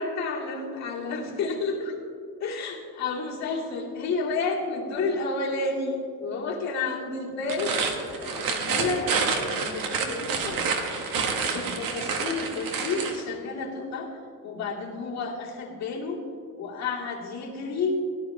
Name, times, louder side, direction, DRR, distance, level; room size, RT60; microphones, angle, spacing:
voice 1, 0.0-1.9 2.4-14.1 14.4-16.2 16.6-18.0, left 3 dB, 50° left, -4 dB, 2.3 m, -31 dB
sound 1, 7.4-13.2, right 5 dB, 70° right, 1.4 m, -28 dB
17.0 x 11.5 x 3.3 m, 2.4 s
cardioid pair, 160°, 35 cm